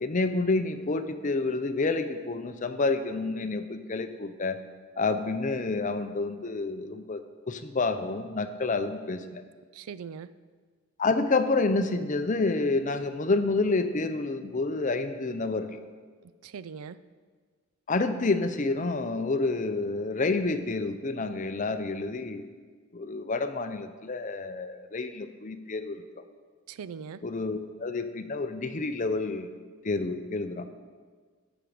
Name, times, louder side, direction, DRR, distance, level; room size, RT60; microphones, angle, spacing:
voice 1, 0.0-4.6 5.0-9.4 11.0-15.8 17.9-22.5 22.9-26.0 27.2-29.5 29.8-30.7, left 3 dB, 35° left, 9 dB, 0.6 m, -29 dB
voice 2, 9.7-10.3 16.4-17.0 26.7-27.2, right 6 dB, 80° right, 16 dB, 0.4 m, -40 dB
14.0 x 6.0 x 5.0 m, 1.5 s
head